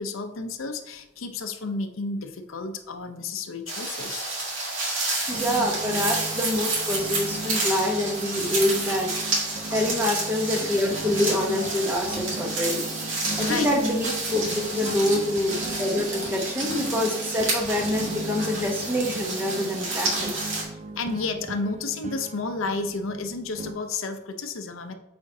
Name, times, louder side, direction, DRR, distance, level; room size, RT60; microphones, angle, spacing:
voice 1, 0.0-4.3 9.7-10.0 13.4-13.7 14.8-15.2 20.7-24.9, left 3 dB, 85° left, 7 dB, 0.6 m, -32 dB
sound 1, 3.7-20.6, right 2 dB, 70° right, 2.0 m, -30 dB
voice 2, 5.3-9.1 9.7-12.9 13.4-20.5, left 1 dB, 10° right, 0 dB, 0.8 m, -26 dB
sound 2, 5.3-23.7, right 2 dB, 35° right, 0.4 m, -37 dB
8.5 x 4.4 x 2.7 m, 0.96 s
head